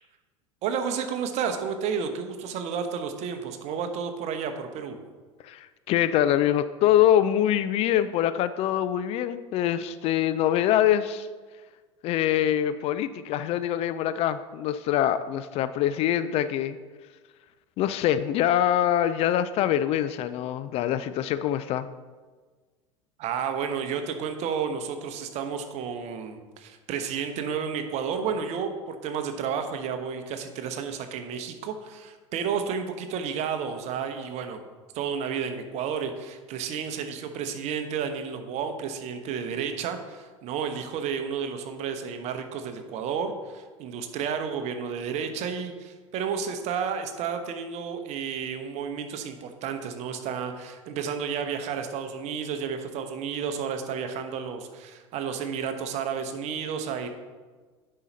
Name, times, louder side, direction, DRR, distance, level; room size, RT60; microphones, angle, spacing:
voice 1, 0.6-5.0 23.2-34.6 34.9-57.1, right 6 dB, 45° right, 7 dB, 1.0 m, -31 dB
voice 2, 5.4-11.3 12.0-16.8 17.8-21.9, left 11 dB, 40° left, 13 dB, 0.4 m, -24 dB
9.7 x 5.6 x 4.1 m, 1.4 s
figure-of-eight pair, 80°, 16 cm